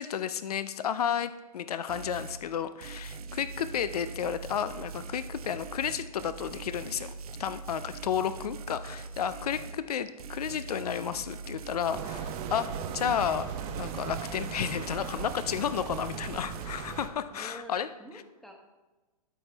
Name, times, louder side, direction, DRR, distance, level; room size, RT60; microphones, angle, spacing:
voice 1, 0.0-7.1 7.4-13.5 13.8-17.9, left 8 dB, 75° left, 13 dB, 0.5 m, -32 dB
sound 1, 1.9-2.4 2.8-9.8 10.2-16.7, right 5 dB, 70° right, 0.8 m, -42 dB
voice 2, 3.4-3.7 17.3-17.7 18.0-18.5, equal, ahead, 1 dB, 1.2 m, -48 dB
sound 2, 11.9-17.1, right 8 dB, 35° right, 0.7 m, -38 dB
12.0 x 5.5 x 3.4 m, 1.2 s
hypercardioid pair, 125°, 20 cm